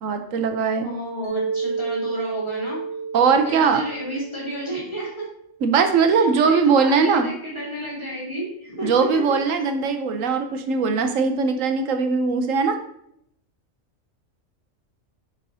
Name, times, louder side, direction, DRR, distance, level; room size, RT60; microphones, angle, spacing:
voice 1, 0.0-0.9 3.1-3.8 5.6-7.3 8.8-12.8, right 5 dB, 85° right, 7 dB, 1.1 m, -20 dB
voice 2, 0.7-2.8 3.4-5.3 6.1-9.1, equal, 20° left, -6 dB, 2.7 m, -31 dB
Mallet percussion, 1.2-5.4, right 5 dB, 35° left, 1.7 m, -31 dB
9.5 x 4.8 x 2.7 m, 0.68 s
omnidirectional pair, 1.3 m